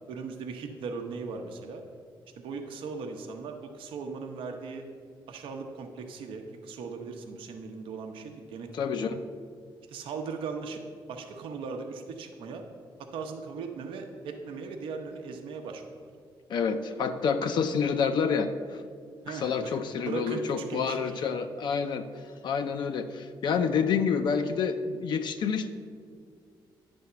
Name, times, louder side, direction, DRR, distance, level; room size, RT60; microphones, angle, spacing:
voice 1, 0.1-1.8 2.4-4.8 5.3-8.7 9.0-9.1 9.9-10.8 11.1-12.6 13.1-16.1 19.2-21.2, right 4 dB, 85° right, 4 dB, 0.7 m, -38 dB
voice 2, 8.7-9.2 16.5-18.8 19.3-22.1 22.4-25.7, left 6 dB, 60° left, 8 dB, 0.4 m, -28 dB
9.6 x 3.4 x 6.8 m, 2.1 s
cardioid pair, 120°, 9 cm